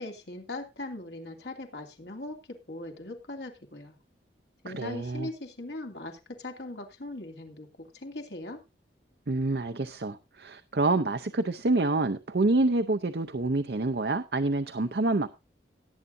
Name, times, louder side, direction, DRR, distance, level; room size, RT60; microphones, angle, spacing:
voice 1, 0.0-2.4 2.7-3.9 4.6-8.6, left 2 dB, 70° left, 2.7 m, -40 dB
voice 2, 4.7-5.3 9.3-15.3, right 2 dB, 65° right, 0.7 m, -27 dB
18.0 x 8.9 x 2.6 m
head